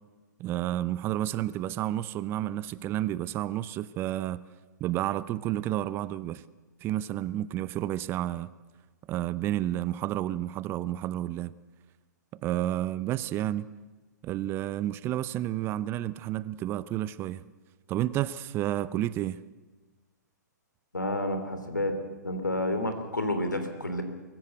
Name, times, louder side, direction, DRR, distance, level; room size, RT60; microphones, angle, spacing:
voice 1, 0.4-4.4 4.8-6.4 6.8-8.5 9.1-11.5 12.4-13.7 14.2-17.4 17.9-19.4, right 13 dB, 25° right, 0.5 m, -30 dB
voice 2, 20.9-21.9 22.2-24.0, left 1 dB, 80° left, 3.3 m, -30 dB
24.0 x 15.0 x 7.9 m
figure-of-eight pair, 115°, 10 cm